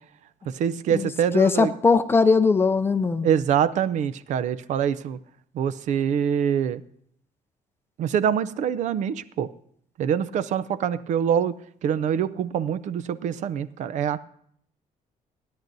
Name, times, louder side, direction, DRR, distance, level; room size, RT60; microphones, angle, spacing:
voice 1, 0.5-1.7 3.2-5.2 5.5-6.8 8.0-9.5 10.0-11.6 11.8-14.2, right 8 dB, 60° right, 0.5 m, -25 dB
voice 2, 1.3-3.3, left 4 dB, 15° left, 0.5 m, -20 dB
29.5 x 10.5 x 2.7 m
cardioid pair, 165°, 14 cm